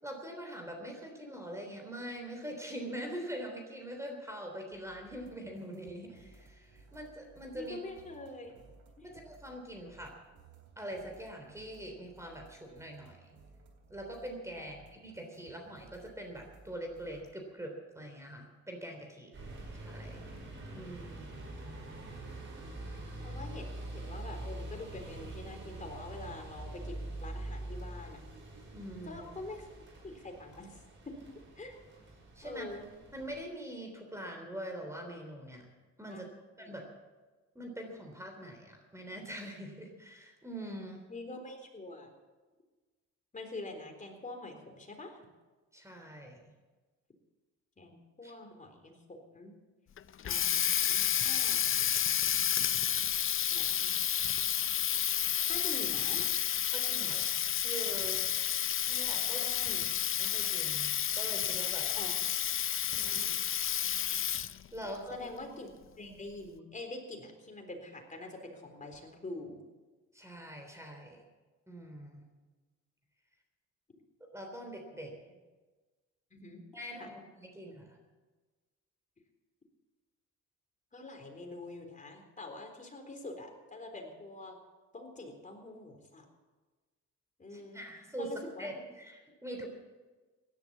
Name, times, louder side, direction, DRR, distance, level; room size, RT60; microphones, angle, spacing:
voice 1, 0.0-7.8 9.0-10.1 10.7-13.2 13.9-19.3 19.8-20.2 20.7-21.2 22.9-23.0 28.7-29.2 32.3-32.7 33.1-35.6 36.0-36.3 36.6-36.9 37.5-41.1 45.7-46.4 48.2-48.3 56.7-58.2 58.9-59.5 60.2-61.9 63.0-63.2 64.2-64.4 64.7-65.3 70.1-71.2 71.7-72.2 74.3-75.1 76.7-78.0 87.5-88.3 88.6-89.7, right 1 dB, 10° right, 2 dB, 3.4 m, -43 dB
sound 1, 4.7-17.3, right 3 dB, 75° right, 3.4 m, -59 dB
voice 2, 7.5-8.5 9.0-9.1 14.5-14.7 23.2-28.2 29.0-29.7 30.0-31.1 31.6-31.8 32.4-32.9 36.1-36.8 41.1-42.1 43.3-45.2 47.8-49.5 50.2-51.7 53.5-53.9 55.4-56.2 59.3-59.9 61.9-62.3 63.0-63.4 65.1-65.7 66.0-69.6 76.3-76.6 76.9-77.1 80.9-84.6 84.9-86.3 87.4-87.8 88.2-88.9, left 2 dB, 25° left, 3 dB, 3.8 m, -45 dB
sound 2, 19.3-33.5, right 2 dB, 40° right, 5.5 m, -44 dB
Water tap faucet, 50.0-64.7, left 9 dB, 45° left, 0.6 m, -31 dB
16.5 x 11.5 x 7.2 m, 1.3 s
cardioid pair, 90°, 30 cm